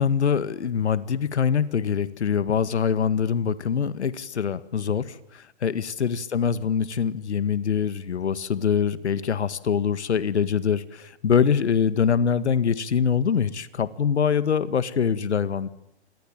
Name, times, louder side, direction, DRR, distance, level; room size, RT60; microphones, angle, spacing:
voice 1, 0.0-15.7, left 7 dB, 80° left, 15 dB, 1.9 m, -24 dB
27.5 x 22.5 x 9.0 m, 0.77 s
hypercardioid pair, 165°, 34 cm